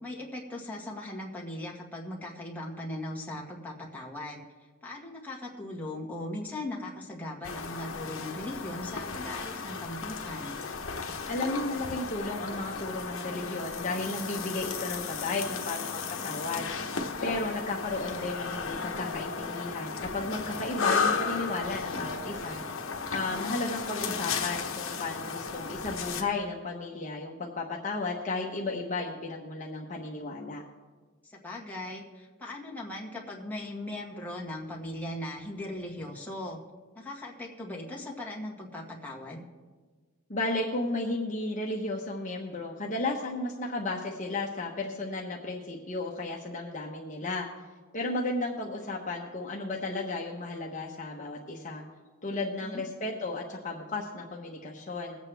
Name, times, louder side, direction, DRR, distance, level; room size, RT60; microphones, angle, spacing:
voice 1, 0.0-4.4 4.8-10.6 23.2-24.2 31.3-36.6 37.0-39.4 52.6-52.8, left 1 dB, 10° left, -3 dB, 1.9 m, -39 dB
sound 1, 7.4-26.2, left 5 dB, 65° left, 1.1 m, -34 dB
voice 2, 11.3-16.7 17.2-22.6 23.1-30.6 40.3-47.5 47.9-51.8 52.2-55.2, left 2 dB, 35° left, -1 dB, 1.1 m, -34 dB
21.5 x 8.1 x 3.4 m, 1.4 s
head